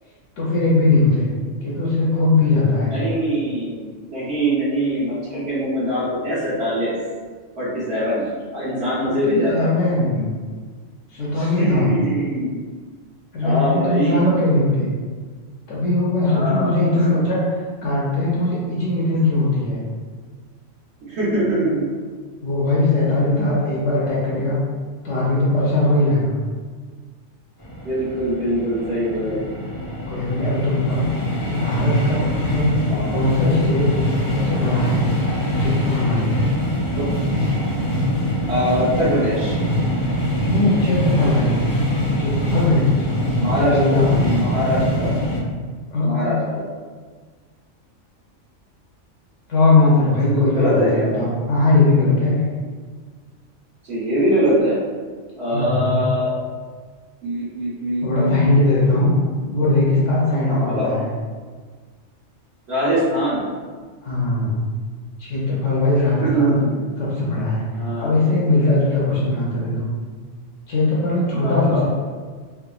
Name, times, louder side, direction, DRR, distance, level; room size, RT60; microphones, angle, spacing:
voice 1, 0.4-1.3 1.6-2.9 9.2-10.3 11.1-11.9 13.3-14.9 15.7-17.4 17.8-19.8 22.4-24.6 25.0-26.3 30.1-31.1 31.4-32.8 33.1-33.9 34.3-35.0 35.6-36.4 40.5-41.6 42.2-43.2 43.7-44.3 45.9-46.4 49.5-52.5 55.5-56.0 58.0-59.1 59.5-61.1 64.0-64.6 65.2-66.6 67.0-67.6 68.0-69.9 70.7-71.9, left 2 dB, 70° left, -6 dB, 0.9 m, -19 dB
voice 2, 2.9-6.9 7.6-8.2 8.5-9.7 11.4-12.5 13.4-14.3 16.2-17.2 21.0-21.8 27.8-29.4 32.9-33.0 37.0-37.1 38.5-39.6 43.4-45.2 46.0-46.6 50.2-51.2 53.8-54.8 55.4-56.3 57.2-58.5 60.5-60.9 62.7-63.4 66.2-66.8 67.7-68.1 71.4-71.8, right 1 dB, 55° right, -11 dB, 1.1 m, -22 dB
sound 1, 27.6-45.4, equal, 30° left, 0.3 m, -23 dB
3.4 x 2.0 x 2.3 m, 1.5 s
omnidirectional pair, 1.4 m